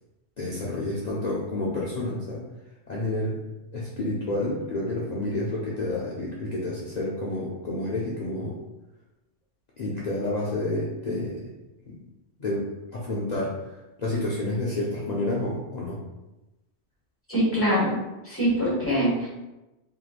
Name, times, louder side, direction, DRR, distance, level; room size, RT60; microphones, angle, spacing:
voice 1, 0.4-2.4 2.9-3.4 3.7-8.6 9.8-11.5 12.0-12.1 12.4-13.6 14.0-16.0, left 1 dB, 55° left, -6 dB, 0.5 m, -29 dB
voice 2, 17.3-17.9 18.2-19.3, equal, 10° left, -7 dB, 1.1 m, -23 dB
3.1 x 2.8 x 2.4 m, 1.0 s
omnidirectional pair, 1.2 m